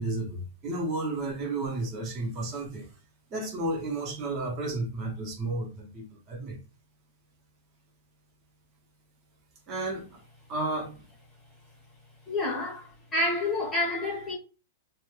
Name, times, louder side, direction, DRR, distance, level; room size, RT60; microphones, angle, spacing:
voice 1, 0.0-2.9 3.3-6.6 9.7-10.1 10.5-11.0, right 2 dB, 20° right, 0.7 m, -32 dB
voice 2, 12.3-14.4, left 2 dB, 10° left, 0.8 m, -29 dB
2.2 x 2.1 x 3.1 m
supercardioid pair, 175°, 0 cm